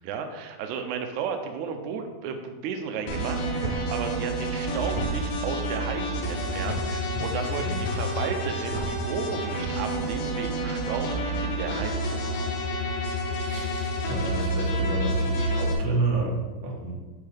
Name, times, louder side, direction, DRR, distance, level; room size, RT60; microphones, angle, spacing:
voice 1, 0.0-11.1 11.4-12.2, right 6 dB, 90° right, 5 dB, 1.7 m, -34 dB
sound 1, 3.1-15.7, right 1 dB, 80° left, 3.0 m, -29 dB
sound 2, 3.6-3.8 4.9-5.1 6.6-6.8 8.6-8.9, right 3 dB, 40° right, 1.3 m, -33 dB
voice 2, 7.1-8.0 13.5-16.9, right 2 dB, 65° right, -2 dB, 2.6 m, -30 dB
9.0 x 4.5 x 3.4 m, 1.3 s
omnidirectional pair, 4.1 m